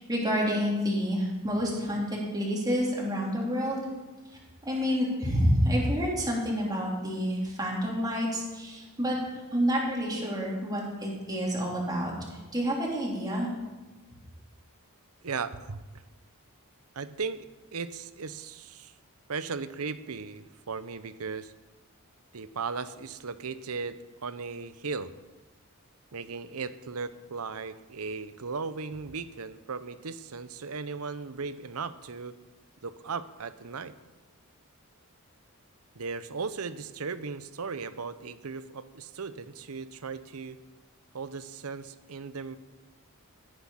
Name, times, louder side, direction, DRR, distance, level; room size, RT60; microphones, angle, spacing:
voice 1, 0.0-3.8 4.6-12.1 12.5-13.5, equal, 20° right, -3 dB, 3.5 m, -28 dB
voice 2, 15.2-15.8 16.9-17.5 17.7-18.9 19.3-21.5 22.3-25.1 26.1-32.3 32.8-33.9 35.9-40.6 41.1-42.6, right 5 dB, 75° right, 13 dB, 0.8 m, -37 dB
16.0 x 9.7 x 5.8 m, 1.2 s
head